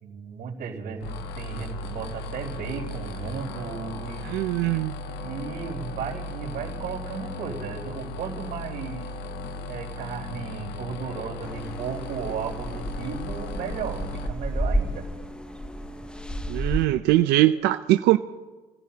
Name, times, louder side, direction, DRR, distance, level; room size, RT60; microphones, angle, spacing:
voice 1, 0.0-4.3 5.2-9.1 9.7-15.1, right 6 dB, 65° right, -9 dB, 4.3 m, -35 dB
sound 1, 1.0-14.3, left 2 dB, 90° left, 1.2 m, -36 dB
sound 2, 1.4-17.7, left 2 dB, 45° left, 7.4 m, -51 dB
voice 2, 4.2-4.9 16.5-18.2, right 15 dB, 85° right, 10 dB, 0.5 m, -21 dB
sound 3, 11.4-16.9, right 1 dB, 5° left, 0.7 m, -31 dB
29.5 x 16.0 x 2.9 m, 1.3 s
cardioid pair, 110°, 17 cm